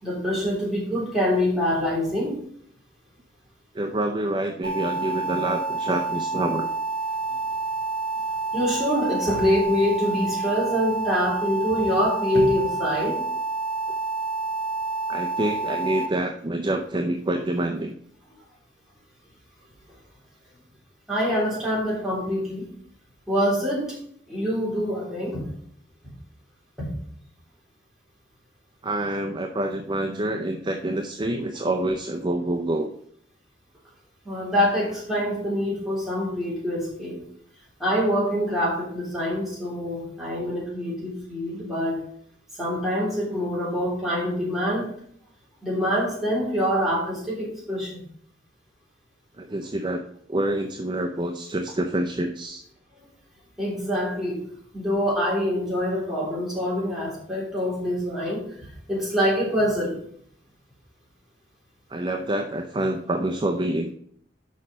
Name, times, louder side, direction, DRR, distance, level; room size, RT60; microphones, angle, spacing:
voice 1, 0.0-2.4 8.5-13.2 21.1-22.7 23.3-24.0 24.3-25.4 26.8-26.9 34.2-37.2 37.8-42.0 42.6-44.9 45.6-48.0 52.9-53.0 53.6-54.4 54.7-59.9, equal, ahead, -6 dB, 3.2 m, -25 dB
voice 2, 3.7-6.7 15.1-18.0 28.8-32.9 49.4-50.0 50.3-52.6 61.9-63.9, right 1 dB, 25° right, 4 dB, 0.5 m, -27 dB
sound 1, 4.6-16.1, right 3 dB, 55° right, 1.9 m, -28 dB
6.3 x 5.4 x 5.2 m, 0.64 s
head